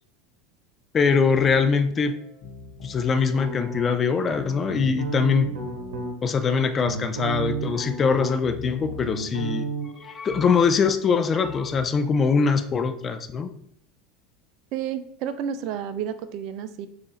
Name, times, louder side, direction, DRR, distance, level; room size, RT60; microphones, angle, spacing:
voice 1, 0.9-2.1 2.8-5.5 6.2-9.7 10.0-13.5, left 5 dB, 30° left, 9 dB, 0.4 m, -22 dB
sound 1, 1.1-11.8, left 4 dB, 60° left, 0.9 m, -44 dB
sound 2, 3.3-4.2 4.7-6.1 6.6-8.5 8.8-9.9, right 3 dB, 85° right, 0.8 m, -32 dB
voice 2, 14.7-16.9, right 8 dB, 60° right, 11 dB, 0.4 m, -31 dB
3.8 x 2.5 x 4.2 m, 0.67 s
hypercardioid pair, 95°, 0 cm